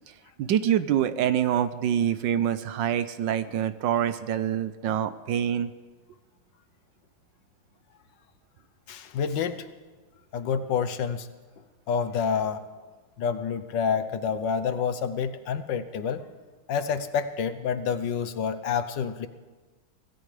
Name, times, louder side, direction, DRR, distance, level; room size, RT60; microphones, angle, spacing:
voice 1, 0.4-5.7, right 10 dB, 75° right, 12 dB, 1.3 m, -25 dB
voice 2, 8.9-9.7 10.3-11.3 11.9-12.6 13.2-16.2 16.7-19.3, left 6 dB, 70° left, 10 dB, 1.4 m, -28 dB
25.0 x 17.5 x 3.3 m, 1.3 s
omnidirectional pair, 2.1 m